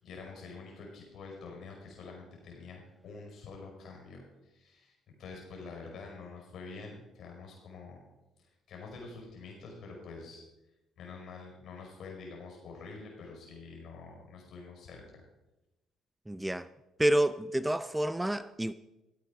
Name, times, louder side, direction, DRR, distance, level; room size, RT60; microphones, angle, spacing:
voice 1, 0.0-8.0 8.7-10.4 11.0-15.2, left 4 dB, 60° left, 5.3 m, -47 dB
voice 2, 16.3-16.7 17.0-18.7, right 1 dB, 10° right, 0.5 m, -28 dB
15.0 x 8.4 x 4.9 m
hypercardioid pair, 55°, 0 cm